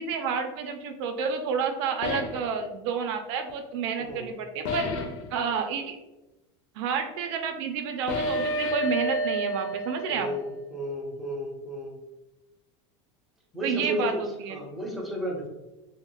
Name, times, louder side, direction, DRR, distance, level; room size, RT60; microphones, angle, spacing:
voice 1, 0.0-4.9 5.3-6.0 6.8-10.3 13.6-14.1 14.4-14.6, right 6 dB, 70° right, 5 dB, 0.4 m, -30 dB
sound 1, 2.0-2.5 4.7-5.3 8.1-10.5, equal, 85° left, 0.6 m, -30 dB
voice 2, 10.1-12.0 13.5-15.5, equal, ahead, -3 dB, 0.6 m, -33 dB
2.9 x 2.8 x 2.2 m, 0.99 s
supercardioid pair, 145°, 15 cm